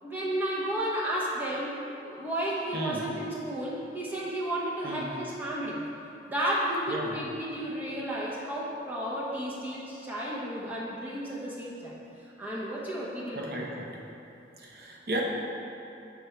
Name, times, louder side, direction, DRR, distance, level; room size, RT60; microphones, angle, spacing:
voice 1, 0.0-5.8 6.3-12.0 12.4-13.6, right 1 dB, 10° right, -7 dB, 0.9 m, -32 dB
voice 2, 2.7-3.0 4.8-5.1 6.9-7.1 13.3-13.9 14.6-15.2, right 1 dB, 60° right, -1 dB, 0.8 m, -34 dB
6.5 x 3.5 x 4.5 m, 2.9 s
head